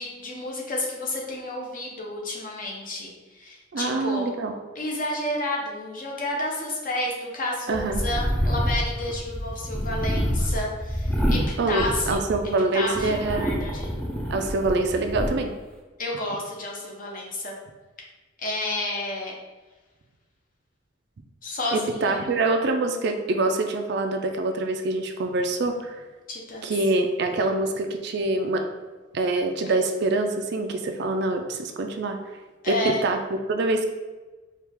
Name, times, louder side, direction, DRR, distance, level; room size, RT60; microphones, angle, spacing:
voice 1, 0.0-4.3 4.7-11.4 11.7-12.3 12.7-13.9 16.0-17.5 18.4-19.3 21.4-22.3 26.3-26.7 32.6-33.0, left 1 dB, 45° left, -1 dB, 0.8 m, -30 dB
voice 2, 3.7-4.5 7.7-8.0 11.6-13.6 14.3-15.5 21.7-26.0 26.6-28.7 29.1-32.2 32.7-33.2 33.5-33.9, right 2 dB, 55° right, 5 dB, 0.4 m, -25 dB
sound 1, 7.7-12.5 12.9-15.3, equal, 5° left, 0.4 m, -27 dB
4.5 x 2.4 x 3.4 m, 1.2 s
head